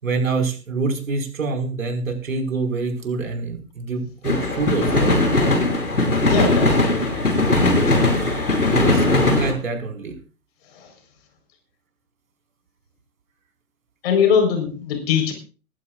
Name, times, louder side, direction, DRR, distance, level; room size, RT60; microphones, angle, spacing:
voice 1, 0.0-5.2 8.6-10.1, right 3 dB, 60° right, 4 dB, 5.4 m, -25 dB
sound 1, 4.2-9.5, left 2 dB, 75° left, 5.9 m, -19 dB
voice 2, 6.2-7.2 7.9-8.0 14.0-15.3, left 7 dB, 40° left, 5 dB, 4.6 m, -21 dB
19.5 x 16.5 x 2.5 m, 0.36 s
figure-of-eight pair, 120°, 46 cm